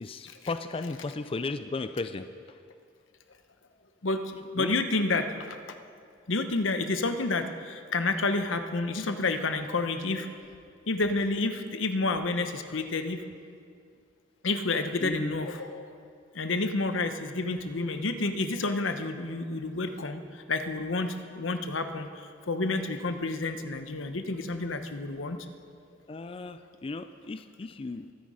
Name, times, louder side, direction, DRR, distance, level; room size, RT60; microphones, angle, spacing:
voice 1, 0.0-2.3 4.6-4.7 15.0-15.4 26.1-28.1, left 3 dB, 30° left, 10 dB, 0.4 m, -35 dB
voice 2, 4.0-5.6 6.3-10.3 10.9-13.2 14.4-15.9 16.3-25.4, left 3 dB, 85° left, 8 dB, 1.0 m, -30 dB
22.5 x 9.5 x 5.0 m, 2.3 s
head